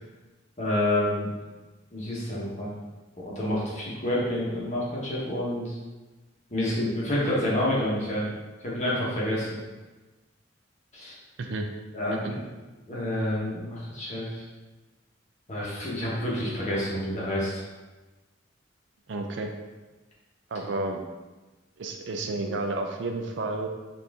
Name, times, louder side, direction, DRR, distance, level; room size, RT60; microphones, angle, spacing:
voice 1, 0.6-1.3 1.9-2.7 3.2-5.7 6.5-8.3 8.6-9.6 10.9-11.1 11.9-12.4 12.9-14.4 15.5-17.6, left 1 dB, 35° left, -6 dB, 1.1 m, -28 dB
voice 2, 19.1-19.5 20.5-21.0 21.8-23.7, right 2 dB, 65° right, 4 dB, 0.4 m, -31 dB
4.2 x 2.6 x 3.5 m, 1.2 s
head